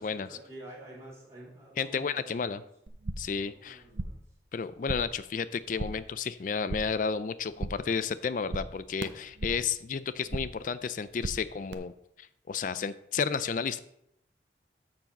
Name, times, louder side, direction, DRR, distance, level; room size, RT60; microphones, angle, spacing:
voice 1, 0.0-2.7 3.5-4.2, right 1 dB, 15° right, -5 dB, 3.2 m, -49 dB
voice 2, 1.8-2.6 3.2-3.8 4.5-11.9 12.2-13.8, left 6 dB, 45° left, 14 dB, 0.4 m, -32 dB
sound 1, 2.9-3.4 3.7-4.3 4.6-5.2 5.5-6.1 6.4-7.1 7.3-8.0 8.2-9.7 10.0-10.7 10.9-11.7, right 2 dB, 85° right, 0.8 m, -38 dB
13.0 x 4.7 x 5.3 m, 0.77 s
head